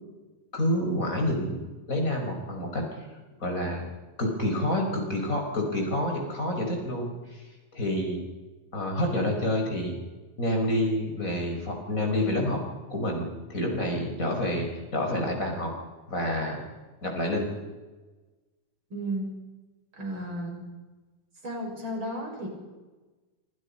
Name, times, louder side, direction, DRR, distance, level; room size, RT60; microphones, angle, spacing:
voice 1, 0.5-1.6 1.9-2.8 3.4-3.8 4.2-7.4 7.7-8.2 8.7-10.0 10.4-12.6 12.9-15.7 16.1-16.6 17.0-17.5, left 1 dB, 25° left, 2 dB, 5.7 m, -28 dB
voice 2, 18.9-19.3 19.9-20.7 21.4-22.5, right 1 dB, 35° right, 1 dB, 7.0 m, -33 dB
27.0 x 26.0 x 5.6 m, 1.2 s
omnidirectional pair, 3.6 m